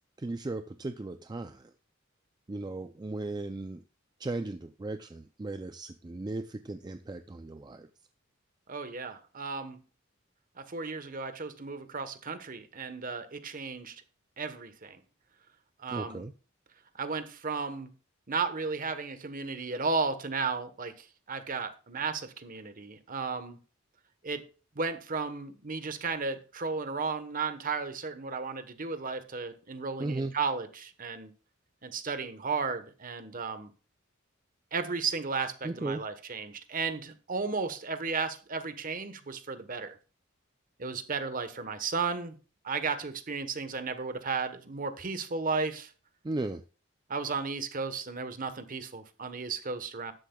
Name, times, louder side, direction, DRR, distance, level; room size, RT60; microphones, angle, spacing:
voice 1, 0.2-1.7 2.5-3.8 4.2-7.9 15.9-16.3 30.0-30.3 35.6-36.0 46.2-46.6, right 2 dB, 20° right, 9 dB, 0.4 m, -36 dB
voice 2, 8.7-9.8 10.6-14.0 14.4-15.0 15.8-16.3 17.0-17.9 18.3-23.6 24.2-24.4 24.7-31.3 31.8-33.7 34.7-40.0 40.8-42.4 42.6-45.9 47.1-50.1, right 4 dB, 45° right, 10 dB, 1.1 m, -34 dB
12.5 x 10.5 x 2.3 m, 0.35 s
head